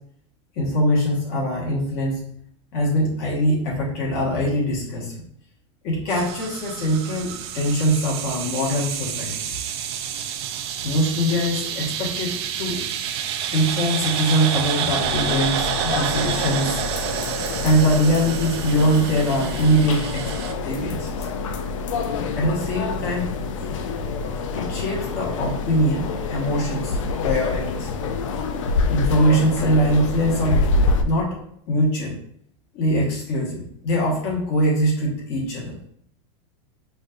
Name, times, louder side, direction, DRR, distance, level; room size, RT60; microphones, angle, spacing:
voice 1, 0.6-2.2 2.7-5.2 5.8-9.6 10.8-12.3 12.6-12.8 13.5-16.8 17.6-20.3 20.6-21.1 22.4-23.3 24.5-27.0 27.2-27.9 28.9-30.7 31.0-31.4 31.7-32.2 32.7-35.7, equal, 45° left, -3 dB, 1.4 m, -22 dB
sound 1, 6.1-20.5, right 9 dB, 55° right, 0.4 m, -29 dB
sound 2, 15.0-31.0, left 3 dB, 85° left, 0.5 m, -27 dB
5.0 x 2.6 x 2.5 m, 0.67 s
supercardioid pair, 155°, 16 cm